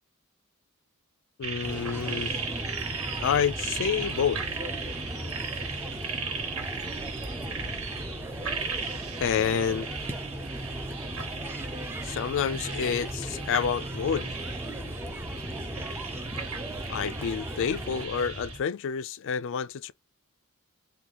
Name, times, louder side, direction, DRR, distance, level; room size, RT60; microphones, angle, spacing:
voice 1, 1.4-2.3 3.2-4.4 9.2-9.9 12.0-14.4 16.9-19.9, left 7 dB, 60° left, 0.4 m, -28 dB
sound 1, 1.4-18.6, right 4 dB, 70° right, 1.5 m, -36 dB
sound 2, 1.6-18.1, right 1 dB, 10° right, 0.4 m, -38 dB
sound 3, 2.5-18.6, equal, 40° right, 1.0 m, -51 dB
3.9 x 2.2 x 2.9 m
head